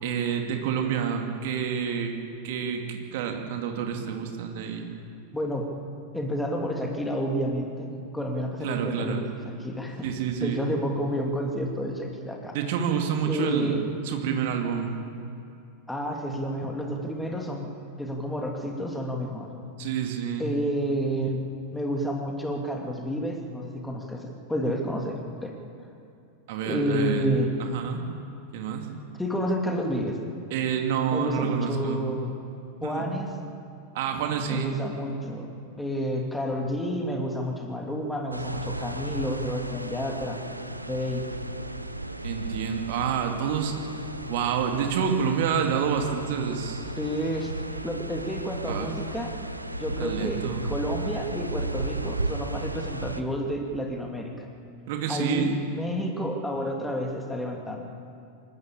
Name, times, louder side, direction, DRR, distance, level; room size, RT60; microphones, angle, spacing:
voice 1, 0.0-2.1 2.4-4.8 8.6-9.2 10.0-10.6 12.5-13.8 14.0-14.9 19.8-20.5 26.5-27.3 27.6-28.0 28.5-28.9 30.5-32.0 32.8-33.1 33.9-34.7 42.2-43.8 44.3-46.8 48.7-48.9 50.0-50.6 54.9-55.6, right 7 dB, 50° right, 4 dB, 2.4 m, -28 dB
voice 2, 5.3-5.7 6.1-7.9 8.1-9.3 9.6-10.1 10.4-12.5 13.2-13.8 15.9-17.7 18.0-19.5 20.4-21.4 21.7-25.5 26.6-27.5 29.1-30.2 31.1-32.3 32.8-33.3 34.5-35.5 35.8-40.4 40.9-41.2 47.0-47.5 47.8-49.5 49.8-54.5 55.1-57.8, equal, 5° left, 1 dB, 2.6 m, -30 dB
sound 1, 38.3-53.2, right 2 dB, 85° right, 0.9 m, -34 dB
27.0 x 12.0 x 8.7 m, 2.5 s
figure-of-eight pair, 90°, 0 cm